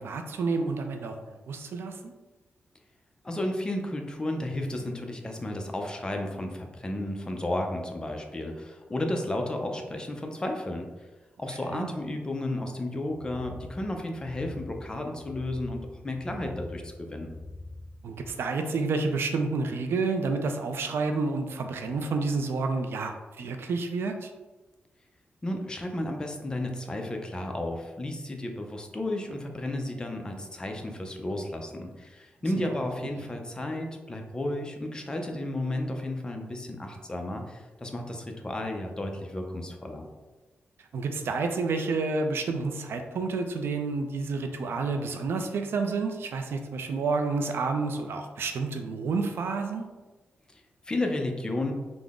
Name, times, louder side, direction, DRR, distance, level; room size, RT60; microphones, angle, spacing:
voice 1, 0.0-2.1 11.6-11.9 18.0-24.3 32.5-32.7 40.8-49.9, right 4 dB, 70° right, 5 dB, 0.4 m, -29 dB
voice 2, 3.2-10.9 11.4-17.3 25.4-40.0 50.5-51.7, left 1 dB, 20° left, 3 dB, 0.4 m, -33 dB
sound 1, 13.1-18.3, left 2 dB, 65° left, 0.6 m, -45 dB
3.7 x 2.0 x 3.5 m, 1.2 s
wide cardioid pair, 125°, 4 cm